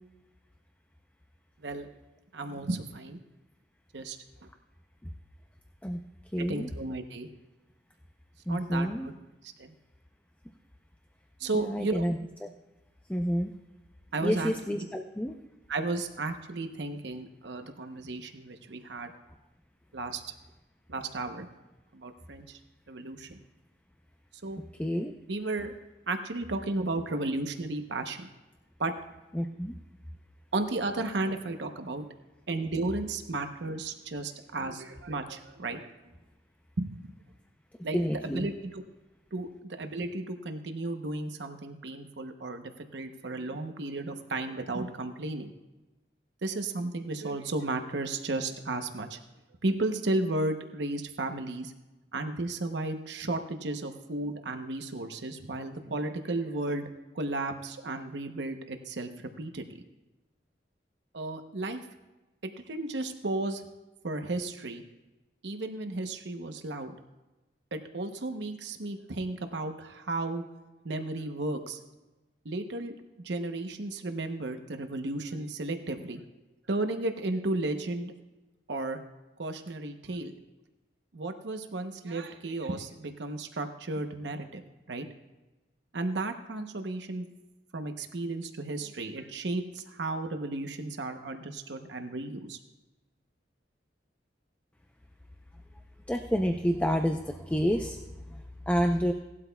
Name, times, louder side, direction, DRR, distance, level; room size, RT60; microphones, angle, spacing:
voice 1, 2.3-3.2 3.9-4.2 6.4-7.3 8.5-9.1 9.4-9.7 11.4-12.1 14.1-14.5 15.7-19.1 19.9-20.2 20.9-21.5 21.9-22.6 22.9-23.4 24.4-24.6 25.3-25.7 26.1-28.3 28.8-28.9 30.5-32.0 32.5-35.8 36.8-37.1 37.8-38.0 38.2-38.8 39.3-45.5 46.4-49.2 49.6-51.7 52.1-56.9 57.1-59.1 59.4-59.6 61.1-61.8 62.4-63.6 64.0-64.8 65.4-66.9 67.7-70.4 70.8-71.8 72.4-72.9 73.2-76.2 76.7-78.1 78.7-79.0 79.4-80.3 81.1-84.6 84.9-85.1 85.9-87.3 87.7-92.6, right 2 dB, 70° right, 6 dB, 0.8 m, -34 dB
voice 2, 6.3-6.7 8.5-9.1 11.5-12.2 13.1-13.5 14.2-15.4 24.8-25.1 29.3-29.7 37.9-38.5 96.1-98.0 98.3-98.4 98.7-99.1, equal, 10° left, 5 dB, 0.5 m, -29 dB
17.5 x 12.0 x 2.3 m, 1.1 s
head